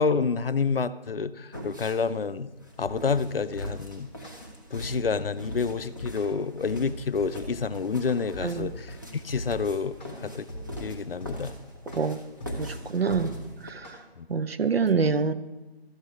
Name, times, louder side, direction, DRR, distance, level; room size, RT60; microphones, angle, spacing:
voice 1, 0.0-2.5 2.8-4.1 4.7-9.0 9.2-10.5 10.7-11.5 14.2-14.3, left 5 dB, 60° left, 0.5 m, -28 dB
sound 1, 1.5-13.7, equal, 20° right, 0.7 m, -43 dB
sound 2, 2.8-13.9, equal, 10° left, 0.9 m, -39 dB
voice 2, 12.6-13.4 13.6-14.0 14.3-15.3, right 5 dB, 65° right, 0.7 m, -26 dB
12.5 x 7.8 x 4.5 m
figure-of-eight pair, 165°, 32 cm